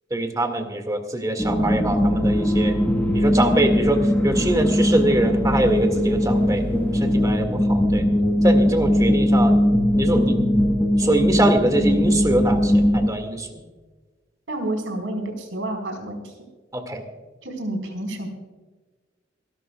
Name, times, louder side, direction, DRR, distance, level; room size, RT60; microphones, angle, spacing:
voice 1, 0.1-2.8 3.1-8.1 8.4-9.6 10.0-10.4 11.0-13.5 16.7-17.0, right 1 dB, 20° right, 5 dB, 2.0 m, -23 dB
sound 1, 1.4-13.1, equal, 10° left, 1.4 m, -20 dB
voice 2, 14.5-16.4 17.4-18.3, right 1 dB, 75° right, 3 dB, 4.3 m, -29 dB
28.0 x 12.0 x 2.3 m, 1.3 s
head